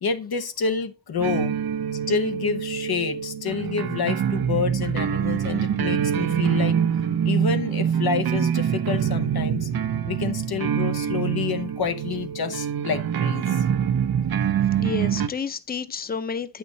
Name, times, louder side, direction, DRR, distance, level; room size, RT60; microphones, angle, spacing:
voice 1, 0.0-1.5 2.1-6.8 7.2-9.7 10.1-13.7, left 5 dB, 90° left, 1.0 m, -28 dB
sound 1, 1.2-15.3, right 8 dB, 80° right, 0.7 m, -25 dB
voice 2, 14.6-16.6, left 5 dB, 25° left, 0.7 m, -31 dB
8.6 x 5.9 x 4.0 m
wide cardioid pair, 80°, 36 cm